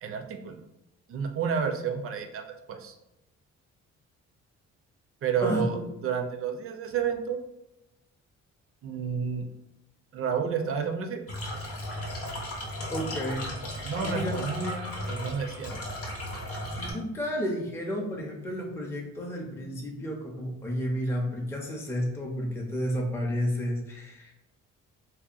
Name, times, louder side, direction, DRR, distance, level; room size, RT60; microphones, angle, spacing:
voice 1, 0.0-0.6 1.1-2.9 5.2-7.4 8.8-9.4 10.1-11.2 13.8-15.8, right 6 dB, 50° right, 6 dB, 0.4 m, -31 dB
voice 2, 5.4-5.8 12.9-13.4 14.0-14.4 16.8-24.3, equal, 10° left, -1 dB, 0.5 m, -31 dB
sound 1, 11.3-16.9, left 1 dB, 50° left, 0.7 m, -35 dB
2.7 x 2.2 x 2.4 m, 0.90 s
cardioid pair, 90°, 30 cm